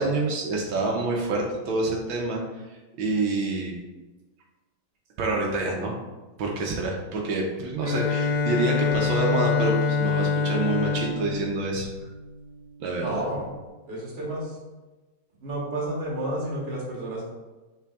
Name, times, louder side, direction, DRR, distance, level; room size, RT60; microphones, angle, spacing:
voice 1, 0.0-2.4 3.0-3.8 5.2-5.9 6.4-11.9 12.8-13.2, right 2 dB, 75° right, -1 dB, 1.5 m, -27 dB
Bowed string instrument, 7.8-12.6, left 5 dB, 65° left, 1.6 m, -26 dB
voice 2, 13.0-13.4 13.9-14.5 15.4-17.2, right 1 dB, 35° right, -4 dB, 1.2 m, -30 dB
5.8 x 3.8 x 2.4 m, 1.2 s
omnidirectional pair, 2.2 m